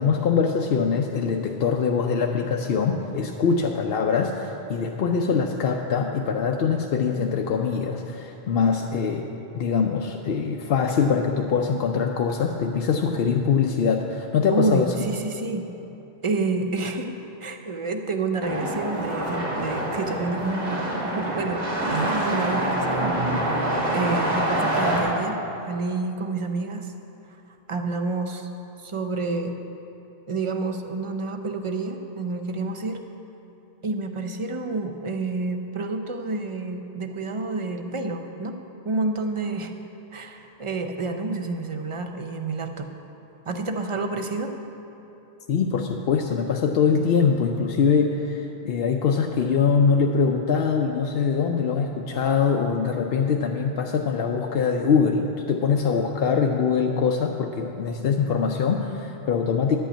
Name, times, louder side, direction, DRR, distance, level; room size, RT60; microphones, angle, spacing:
voice 1, 0.0-9.3 9.5-15.0 45.5-59.8, left 6 dB, 70° left, 2 dB, 0.8 m, -23 dB
voice 2, 14.5-15.6 16.2-17.1 17.4-23.6 23.9-26.9 27.7-28.5 28.8-29.6 30.3-33.0 33.8-38.6 38.8-39.7 40.1-42.9 43.5-44.5, right 3 dB, 35° right, 6 dB, 0.7 m, -29 dB
sound 1, 18.4-25.0, right 1 dB, 65° right, 2.6 m, -26 dB
11.0 x 5.6 x 8.6 m, 3.0 s
omnidirectional pair, 1.0 m